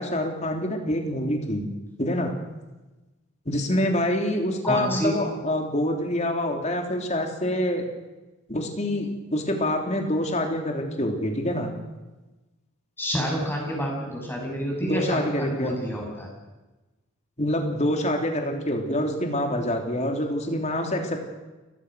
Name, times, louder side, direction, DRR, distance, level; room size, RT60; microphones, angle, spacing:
voice 1, 0.0-1.7 2.0-2.4 3.4-7.8 8.5-11.7 14.8-15.7 17.4-21.3, left 1 dB, 35° left, 3 dB, 3.3 m, -26 dB
voice 2, 4.6-5.1 13.0-16.3, equal, 10° left, -1 dB, 6.8 m, -28 dB
29.5 x 15.5 x 6.4 m, 1.1 s
head